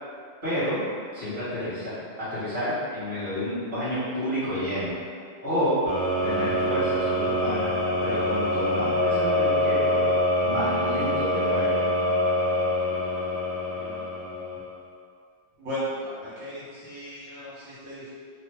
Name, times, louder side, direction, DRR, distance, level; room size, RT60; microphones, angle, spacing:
voice 1, 0.4-0.8 1.1-1.9 2.2-4.9 5.4-5.8 6.2-7.7 8.0-10.1 10.4-11.8, equal, 45° right, -16 dB, 1.6 m, -29 dB
sound 1, 5.9-14.8, left 1 dB, 50° left, 0.9 m, -25 dB
voice 2, 15.6-18.1, equal, 70° right, -12 dB, 1.2 m, -36 dB
3.3 x 2.0 x 3.2 m, 2.1 s
omnidirectional pair, 1.4 m